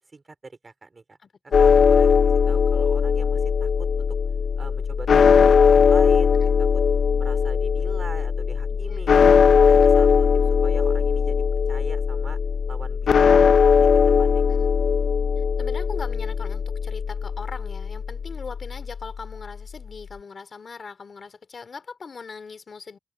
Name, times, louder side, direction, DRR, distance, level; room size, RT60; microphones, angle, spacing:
voice 1, 0.1-1.2 1.6-4.1 4.6-6.5 7.2-9.2 9.6-10.3 10.6-11.4 11.7-12.4 12.7-14.5, right 3 dB, 35° right, 3.5 m, -41 dB
voice 2, 1.2-1.6 6.4-6.5 8.8-9.0 14.5-14.7 15.4-23.0, left 5 dB, 50° left, 2.8 m, -40 dB
sound 1, 1.5-19.4, left 6 dB, 70° left, 0.5 m, -19 dB
wide cardioid pair, 145°, 0 cm